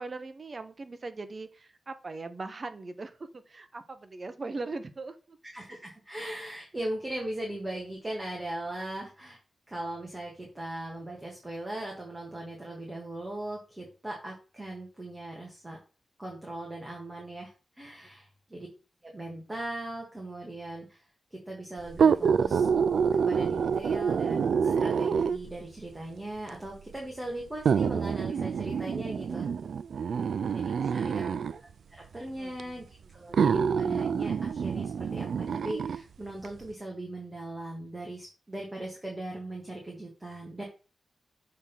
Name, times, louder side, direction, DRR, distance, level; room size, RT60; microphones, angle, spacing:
voice 1, 0.0-5.4 30.1-30.5 30.8-31.4 32.4-32.7, right 3 dB, 35° right, 0.8 m, -40 dB
voice 2, 5.4-9.4 9.7-15.8 16.2-18.7 19.0-21.0 21.3-22.7 23.1-29.5 30.5-31.2 31.9-40.6, right 1 dB, 15° right, 1.6 m, -39 dB
sound 1, 21.9-25.6 26.5-26.6 27.7-31.6 32.6-32.7 33.3-36.0 36.4-36.5, right 6 dB, 85° right, 0.3 m, -27 dB
6.6 x 3.6 x 5.8 m
wide cardioid pair, 155°, 0 cm